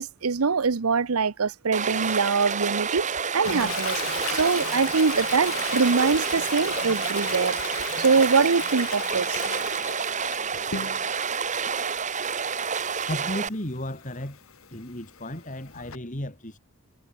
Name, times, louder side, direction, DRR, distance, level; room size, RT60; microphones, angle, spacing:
voice 1, 0.0-4.0 4.3-9.4, right 5 dB, 80° right, 0.8 m, -24 dB
Stream, 1.7-13.5, right 6 dB, 35° right, 1.8 m, -29 dB
Toilet flush, 3.4-11.3 11.7-16.0, left 7 dB, 70° left, 1.8 m, -37 dB
voice 2, 13.1-14.4 14.7-16.6, left 1 dB, 35° left, 3.7 m, -34 dB
head